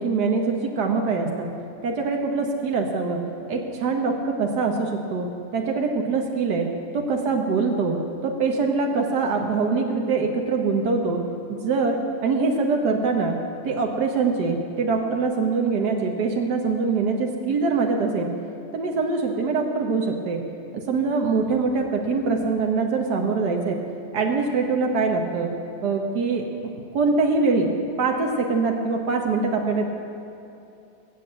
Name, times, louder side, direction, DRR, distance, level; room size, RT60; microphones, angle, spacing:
voice 1, 0.0-1.5 1.8-3.2 3.5-5.3 5.5-6.7 6.9-11.2 11.5-13.3 13.6-18.3 18.7-20.4 20.7-23.8 24.1-25.5 25.8-27.7 28.0-29.8, right 4 dB, 85° right, 2 dB, 1.7 m, -23 dB
21.5 x 8.5 x 7.8 m, 2.8 s
omnidirectional pair, 1.7 m